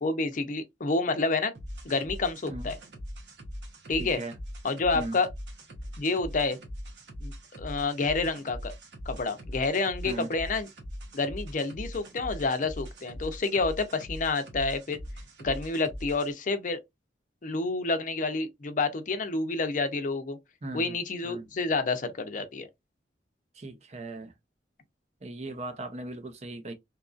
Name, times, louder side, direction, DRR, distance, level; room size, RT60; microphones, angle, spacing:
voice 1, 0.0-1.5 1.8-2.8 3.9-4.2 4.6-5.3 6.0-6.6 7.2-8.7 9.1-10.7 11.1-15.0 15.4-16.8 17.4-20.4 20.7-22.7, left 3 dB, 45° left, 0.5 m, -29 dB
sound 1, 1.5-16.3, equal, 75° right, 0.9 m, -41 dB
voice 2, 4.0-4.3 4.9-5.2 10.0-10.3 20.6-21.0 21.2-21.5 23.5-24.3 25.2-26.7, right 2 dB, 40° right, 0.6 m, -38 dB
2.8 x 2.5 x 2.3 m
head